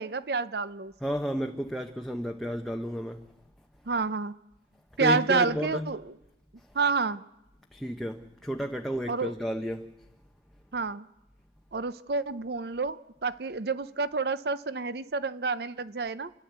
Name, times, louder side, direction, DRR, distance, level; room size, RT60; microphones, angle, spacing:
voice 1, 0.0-0.9 3.9-4.3 5.0-6.2 6.7-7.2 9.1-9.3 10.7-11.1 11.7-16.3, right 4 dB, 60° right, 0.6 m, -29 dB
voice 2, 1.0-3.3 5.0-5.9 7.7-9.9, equal, ahead, 0.7 m, -32 dB
30.0 x 11.0 x 8.0 m
head